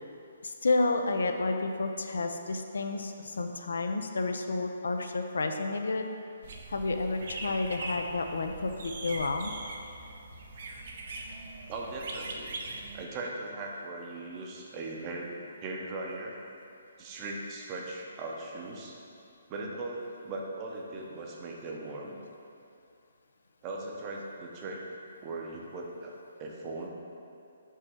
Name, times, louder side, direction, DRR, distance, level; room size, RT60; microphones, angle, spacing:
voice 1, 0.4-6.1 6.7-9.5, left 3 dB, 85° left, 5 dB, 0.5 m, -30 dB
sound 1, 6.4-13.0, right 2 dB, 60° right, 0.7 m, -41 dB
voice 2, 11.7-12.6 12.9-15.3 15.6-16.4 17.0-19.0 19.5-22.2 23.6-24.9 25.2-26.9, right 2 dB, 25° right, -1 dB, 0.7 m, -39 dB
5.5 x 3.1 x 5.5 m, 2.6 s
hypercardioid pair, 155°, 0 cm